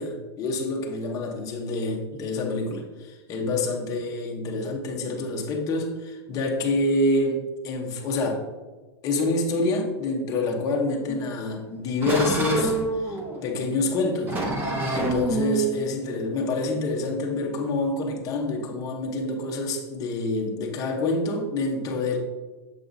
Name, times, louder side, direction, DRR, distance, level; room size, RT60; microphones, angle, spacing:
voice 1, 0.0-8.4 9.0-12.8 13.0-14.4 14.9-22.2, left 2 dB, 25° left, 0 dB, 0.9 m, -27 dB
sound 1, 11.1-17.7, right 2 dB, 15° right, 0.7 m, -29 dB
7.1 x 5.4 x 2.6 m, 1.3 s
supercardioid pair, 160°, 15 cm